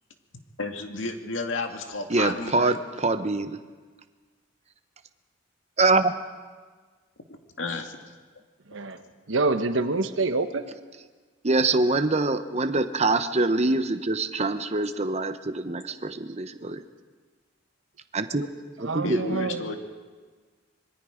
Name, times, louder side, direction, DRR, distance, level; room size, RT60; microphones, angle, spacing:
voice 1, 0.6-2.7 7.6-8.1 19.0-19.8, left 3 dB, 75° left, 5 dB, 2.1 m, -32 dB
voice 2, 2.1-3.6 5.8-6.1 11.4-16.8 18.1-18.4 18.8-19.4, right 3 dB, 35° right, 9 dB, 1.0 m, -24 dB
voice 3, 8.7-9.0 9.3-10.7 18.8-19.8, right 3 dB, 75° right, 9 dB, 1.3 m, -26 dB
25.5 x 22.0 x 5.2 m, 1.4 s
head